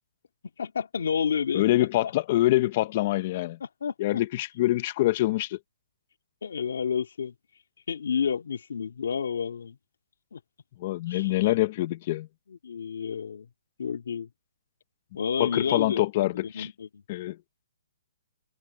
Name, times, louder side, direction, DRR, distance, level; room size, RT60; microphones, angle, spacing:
voice 1, 0.6-2.1 3.6-4.2 6.4-7.3 7.9-9.8 10.3-10.4 11.1-11.5 12.5-13.5 13.8-14.3 15.1-16.1 16.4-17.0, left 7 dB, 65° left, 2.1 m, -30 dB
voice 2, 1.5-3.6 4.0-5.6 10.8-12.3 15.4-16.7 17.1-17.4, left 16 dB, 30° left, 0.7 m, -25 dB
hypercardioid pair, 175°, 0 cm